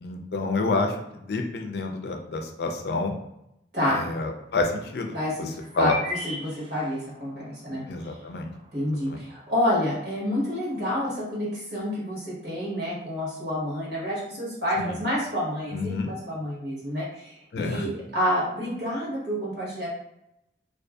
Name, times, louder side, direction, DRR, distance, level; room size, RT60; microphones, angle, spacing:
voice 1, 0.0-3.1 3.9-5.2 5.7-6.0 7.9-8.5 9.0-9.2 14.8-15.0 15.7-16.1 17.5-17.9, left 3 dB, 60° left, 3 dB, 0.4 m, -28 dB
voice 2, 3.7-4.0 5.1-5.5 5.7-7.8 8.7-19.9, left 1 dB, 65° right, -6 dB, 1.2 m, -28 dB
sound 1, 4.4-10.8, left 1 dB, 30° right, 0.3 m, -42 dB
2.6 x 2.4 x 2.3 m, 0.82 s
head